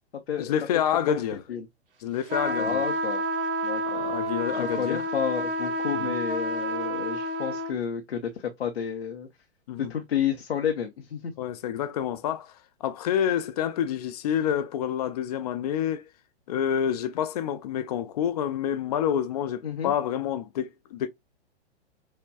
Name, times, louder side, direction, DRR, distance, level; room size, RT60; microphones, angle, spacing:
voice 1, 0.4-1.4 2.0-2.8 3.8-5.1 5.9-6.1 9.7-9.9 11.4-16.1 16.5-21.1, left 9 dB, 35° left, 0.5 m, -28 dB
sound 1, 2.3-7.7, right 1 dB, 55° right, 0.9 m, -29 dB
voice 2, 2.6-3.2 3.6-4.0 4.5-9.3 9.8-11.3 19.6-19.9, left 8 dB, 70° left, 0.8 m, -31 dB
6.1 x 2.2 x 2.3 m
figure-of-eight pair, 110°, 33 cm